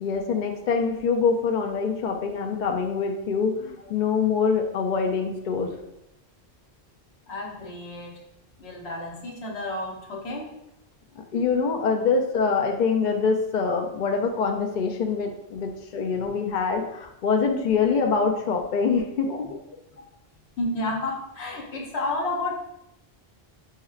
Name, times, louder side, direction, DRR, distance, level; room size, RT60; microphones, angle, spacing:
voice 1, 0.0-5.7 11.2-19.5, left 5 dB, 55° left, 3 dB, 0.6 m, -25 dB
voice 2, 7.3-8.2 8.6-10.5 16.7-16.8 19.3-19.4 20.6-22.5, left 2 dB, 70° left, -1 dB, 1.1 m, -31 dB
6.4 x 3.0 x 2.4 m, 0.84 s
omnidirectional pair, 1.1 m